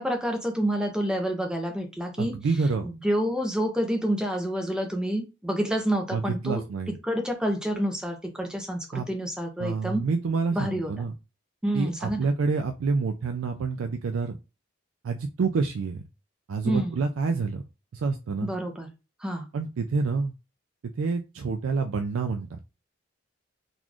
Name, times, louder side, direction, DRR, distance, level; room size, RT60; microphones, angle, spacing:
voice 1, 0.0-2.3 2.8-6.6 7.0-10.0 10.5-10.9 11.6-12.3 16.6-17.0 18.4-18.9 19.2-19.5, equal, 5° right, 3 dB, 0.7 m, -28 dB
voice 2, 2.2-2.9 6.1-7.0 8.9-9.1 9.6-11.1 11.7-14.4 15.0-16.0 16.5-17.6 17.9-18.5 19.5-20.3 21.0-22.7, right 4 dB, 80° right, 6 dB, 0.4 m, -28 dB
4.0 x 3.0 x 2.4 m, 0.28 s
head